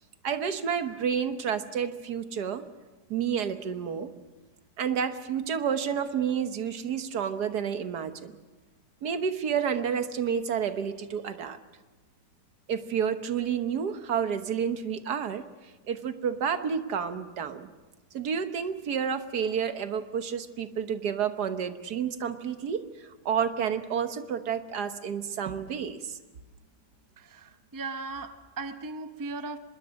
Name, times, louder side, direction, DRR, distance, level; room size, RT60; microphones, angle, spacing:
voice 1, 0.2-2.6 3.1-4.1 4.8-8.3 9.0-11.6 12.7-15.4 15.9-17.7 18.1-22.8 23.2-26.2, right 7 dB, 70° right, 9 dB, 1.7 m, -30 dB
voice 2, 27.2-29.6, right 3 dB, 20° right, 9 dB, 0.6 m, -37 dB
25.0 x 21.5 x 6.4 m, 1.2 s
omnidirectional pair, 1.8 m